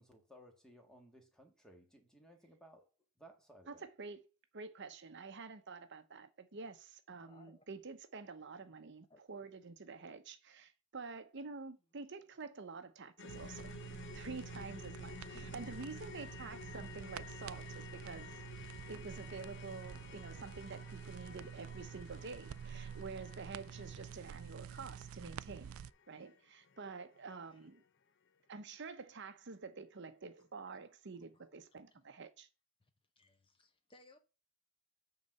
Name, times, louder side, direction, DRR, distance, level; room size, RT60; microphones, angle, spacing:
voice 1, 0.0-2.9 3.2-3.8, right 1 dB, 5° left, 1.8 m, -60 dB
voice 2, 3.7-4.2 4.5-13.7 14.1-18.4 18.9-25.7 26.1-27.8 28.5-32.5, right 4 dB, 55° right, 0.8 m, -48 dB
voice 3, 7.2-7.6 9.1-9.2 13.9-14.1 14.4-14.6 15.3-16.1 25.3-25.7 27.5-27.7 30.4-30.5 31.3-31.5 31.9-32.1 32.8-32.9 33.2-34.2, left 2 dB, 25° left, 0.8 m, -65 dB
sound 1, 13.2-27.4 27.7-27.8 28.3-28.4, left 6 dB, 60° left, 0.6 m, -53 dB
sound 2, 13.3-25.9, right 8 dB, 75° right, 0.3 m, -49 dB
8.6 x 4.0 x 6.5 m
head